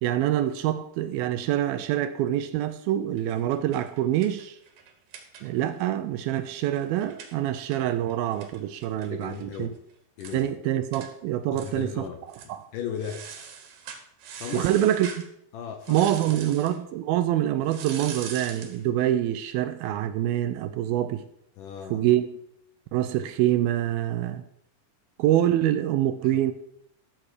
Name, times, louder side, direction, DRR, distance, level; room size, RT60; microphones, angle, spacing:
voice 1, 0.0-4.6 5.4-9.7 10.3-12.1 12.5-12.6 14.5-15.1 15.9-21.2 21.9-22.3 22.9-24.4 25.2-26.5, right 12 dB, 80° right, 2.3 m, -25 dB
sound 1, 3.2-5.8 6.1-6.2 6.5-9.6 9.9-10.0 10.2-10.4 10.9-11.1 11.5-12.0 12.3-12.5 13.0-15.3 15.8-16.8 17.7-18.8, right 7 dB, 65° right, 2.7 m, -43 dB
voice 2, 9.1-9.8 10.2-10.5 11.5-12.2 12.4-13.3 14.4-14.7 15.5-16.4 21.6-22.0 26.2-26.4, left 8 dB, 75° left, 2.0 m, -36 dB
13.5 x 7.3 x 4.9 m
omnidirectional pair, 4.6 m